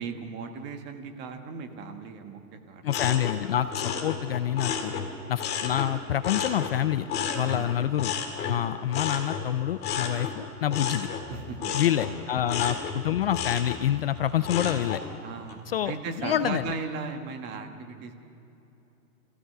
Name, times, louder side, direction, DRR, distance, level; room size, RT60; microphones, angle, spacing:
voice 1, 0.0-3.0 4.8-5.1 7.4-7.8 11.3-11.7 15.2-18.1, right 5 dB, 25° right, 6 dB, 1.4 m, -37 dB
voice 2, 2.8-4.9 5.3-7.1 7.3-8.1 8.5-11.1 11.7-15.0 15.7-16.7, left 11 dB, 40° left, 13 dB, 0.5 m, -27 dB
sound 1, 2.9-5.9 6.2-15.1 15.5-16.0, left 7 dB, 20° left, 2.1 m, -32 dB
27.5 x 15.5 x 6.7 m, 2.9 s
hypercardioid pair, 150°, 46 cm